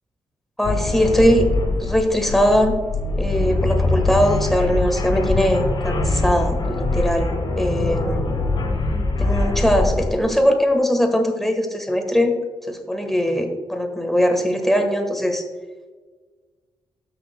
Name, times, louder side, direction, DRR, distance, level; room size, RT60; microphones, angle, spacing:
sound 1, 0.6-10.2, left 2 dB, 65° left, 2.2 m, -23 dB
voice 1, 0.6-1.5 1.8-2.8 3.2-8.3 9.2-12.3 12.6-15.4, equal, 5° left, 4 dB, 1.3 m, -20 dB
13.0 x 6.3 x 2.2 m, 1.4 s
wide cardioid pair, 130°, 9 cm